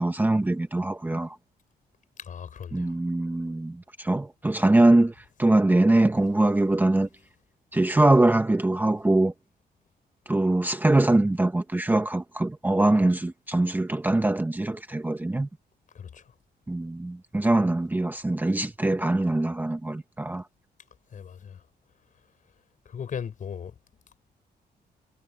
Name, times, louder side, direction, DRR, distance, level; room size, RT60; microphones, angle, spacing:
voice 1, 0.0-1.4 2.7-7.1 7.7-9.3 10.3-15.5 16.7-20.5, right 2 dB, 10° right, 1.0 m, -23 dB
voice 2, 2.2-3.0 15.9-16.3 21.1-21.6 22.8-23.8, left 7 dB, 50° left, 5.2 m, -38 dB
wide cardioid pair, 150°, 17 cm